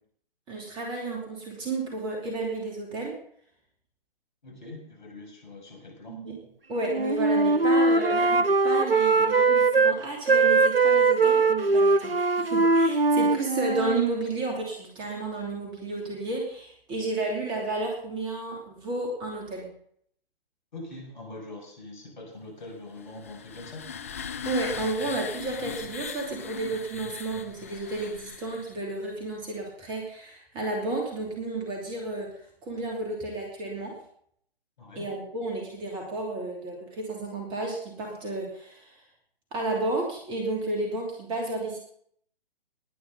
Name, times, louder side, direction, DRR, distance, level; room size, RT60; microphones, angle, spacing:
voice 1, 0.5-3.2 6.1-6.4 6.7-19.7 24.4-33.9 35.0-38.9 39.5-41.8, right 2 dB, 15° right, 0 dB, 2.8 m, -32 dB
voice 2, 4.4-6.2 20.7-23.8 34.8-35.1, left 2 dB, 55° left, 1 dB, 6.8 m, -43 dB
Wind instrument woodwind instrument, 6.9-10.0 10.3-14.0, right 3 dB, 70° right, 1.0 m, -21 dB
sound 1, 23.0-28.8, left 7 dB, 15° left, 0.4 m, -39 dB
20.0 x 9.6 x 4.0 m, 0.63 s
figure-of-eight pair, 135°, 30 cm